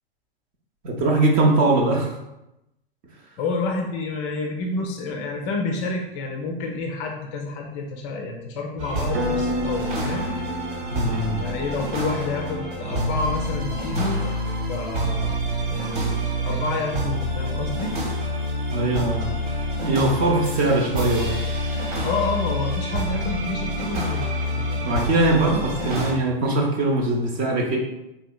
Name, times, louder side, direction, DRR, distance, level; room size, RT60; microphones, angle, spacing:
voice 1, 0.8-2.2 10.9-11.4 18.7-21.4 24.8-27.8, right 2 dB, 30° right, 0 dB, 0.7 m, -21 dB
voice 2, 3.4-10.4 11.4-14.3 14.7-15.4 15.7-18.0 22.0-24.9 25.5-26.0, left 3 dB, 30° left, 2 dB, 0.4 m, -29 dB
sound 1, 8.8-26.1, equal, 60° right, 1.1 m, -27 dB
Piano, 9.1-19.5, equal, 85° right, 0.7 m, -36 dB
4.3 x 2.7 x 2.3 m, 0.90 s
hypercardioid pair, 110°, 29 cm